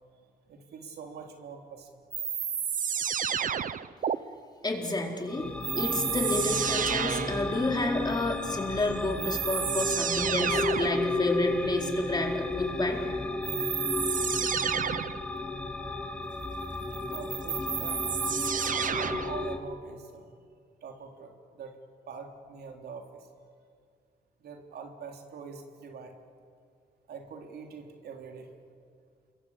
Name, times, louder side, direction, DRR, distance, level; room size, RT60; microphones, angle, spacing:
voice 1, 0.5-2.0 2.9-3.5 17.1-18.1 18.9-20.3 20.8-21.8 22.1-23.3 24.4-26.2 27.1-28.5, right 5 dB, 80° right, 3 dB, 3.4 m, -44 dB
sound 1, 2.1-4.2 5.6-7.4 8.7-8.8 9.2-11.0 13.4-15.2 16.9-19.4, right 8 dB, 55° right, 1.0 m, -30 dB
voice 2, 4.6-5.5 5.7-13.0, left 2 dB, 25° left, 1 dB, 4.4 m, -30 dB
sound 2, 5.3-19.6, left 2 dB, 5° left, 2.4 m, -33 dB
28.5 x 22.5 x 8.5 m, 2.1 s
cardioid pair, 85°, 16 cm